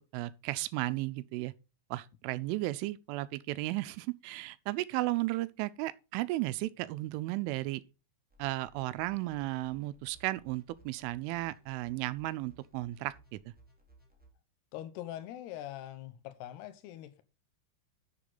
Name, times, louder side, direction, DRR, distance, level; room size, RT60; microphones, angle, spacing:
voice 1, 0.1-1.5 1.9-7.8 8.4-13.5, right 18 dB, 85° right, 3.1 m, -34 dB
sound 1, 8.3-14.3, right 1 dB, 5° right, 1.0 m, -61 dB
voice 2, 14.7-17.2, left 12 dB, 70° left, 2.8 m, -43 dB
11.5 x 7.2 x 4.0 m
omnidirectional pair, 5.6 m